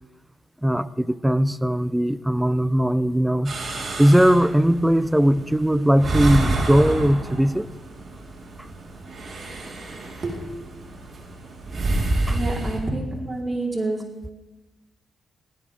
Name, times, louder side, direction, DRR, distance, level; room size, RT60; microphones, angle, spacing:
voice 1, 0.6-3.6 4.0-7.7 12.3-12.4, equal, 5° right, 0.8 m, -19 dB
sound 1, 3.4-12.8, right 2 dB, 55° right, 4.7 m, -29 dB
voice 2, 12.2-14.1, right 2 dB, 25° right, 4.9 m, -28 dB
19.0 x 18.0 x 3.9 m
supercardioid pair, 55°, 0 cm